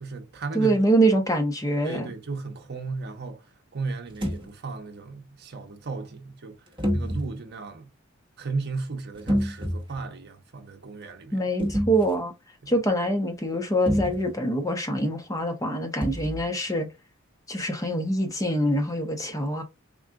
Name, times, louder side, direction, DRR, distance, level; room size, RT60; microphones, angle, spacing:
voice 1, 0.0-0.7 1.8-6.6 6.9-7.9 8.4-11.4 12.6-12.7, right 4 dB, 50° right, 0.7 m, -35 dB
voice 2, 0.5-2.1 11.3-12.3 12.7-16.9 17.5-19.6, right 1 dB, 15° left, 0.7 m, -24 dB
sound 1, 4.1-4.5 6.8-7.3 9.1-10.0 11.6-12.2 13.9-14.3 16.0-16.4, equal, 25° right, 1.0 m, -27 dB
3.7 x 2.3 x 3.5 m
head